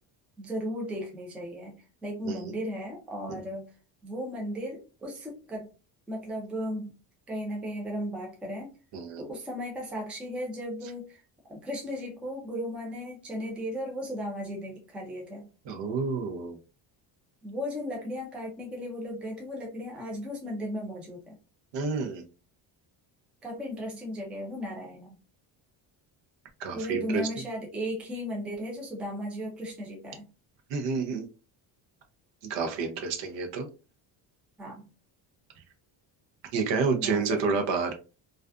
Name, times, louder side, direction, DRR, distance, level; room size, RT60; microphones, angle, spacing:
voice 1, 0.4-3.7 4.0-5.7 6.1-6.9 7.3-8.7 9.2-11.2 11.5-15.5 17.4-21.3 23.4-25.2 26.7-30.3 34.6-34.8 37.0-37.6, equal, 5° right, -1 dB, 0.3 m, -36 dB
voice 2, 8.9-9.2 15.7-16.6 21.7-22.2 26.6-27.3 30.7-31.3 32.4-33.7 36.5-37.9, right 4 dB, 65° right, 5 dB, 0.7 m, -29 dB
2.4 x 2.3 x 2.2 m, 0.32 s
cardioid pair, 155°, 47 cm